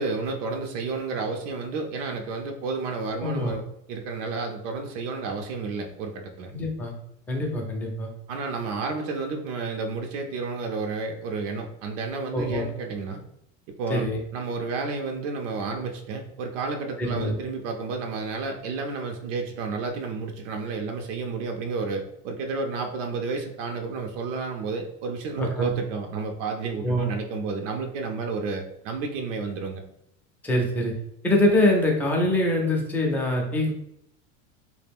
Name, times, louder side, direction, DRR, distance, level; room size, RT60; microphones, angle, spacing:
voice 1, 0.0-3.6 3.9-6.5 8.3-13.2 13.8-14.0 14.3-29.8, right 4 dB, 85° right, 3 dB, 0.5 m, -31 dB
voice 2, 3.2-3.5 6.5-6.9 7.3-8.1 12.3-12.6 13.9-14.2 17.0-17.4 25.4-25.7 26.8-27.1 30.4-30.9 31.2-33.7, left 1 dB, 5° left, -1 dB, 0.3 m, -24 dB
2.3 x 2.1 x 3.4 m, 0.77 s
supercardioid pair, 125°, 37 cm